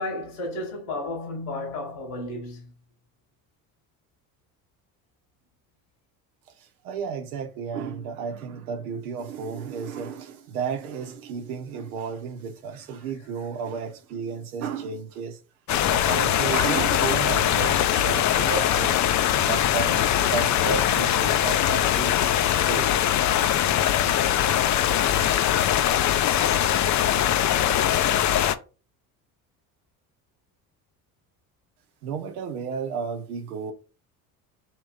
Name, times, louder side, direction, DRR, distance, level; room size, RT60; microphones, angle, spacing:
voice 1, 0.0-2.7, left 2 dB, 85° left, 1.9 m, -33 dB
voice 2, 6.6-15.4 15.9-19.0 19.4-22.2 22.5-23.0 32.0-33.7, right 6 dB, 85° right, 0.9 m, -33 dB
sound 1, 15.7-28.6, left 11 dB, 40° left, 0.5 m, -22 dB
3.6 x 2.9 x 4.8 m
hypercardioid pair, 70°, 43 cm